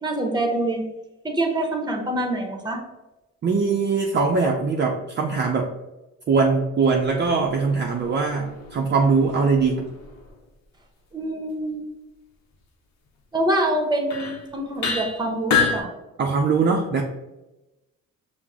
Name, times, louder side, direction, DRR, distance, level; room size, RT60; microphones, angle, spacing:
voice 1, 0.0-0.8 1.2-2.8 11.1-11.8 13.3-15.9, right 1 dB, 15° right, 3 dB, 0.9 m, -25 dB
voice 2, 3.4-5.7 6.3-9.8 16.2-17.0, right 4 dB, 35° right, 0 dB, 0.5 m, -21 dB
sound 1, 6.9-10.3 13.4-13.5 14.1-14.4 14.8-15.8, left 5 dB, 65° left, 0.8 m, -29 dB
5.7 x 2.1 x 3.6 m, 1.0 s
cardioid pair, 90°, 30 cm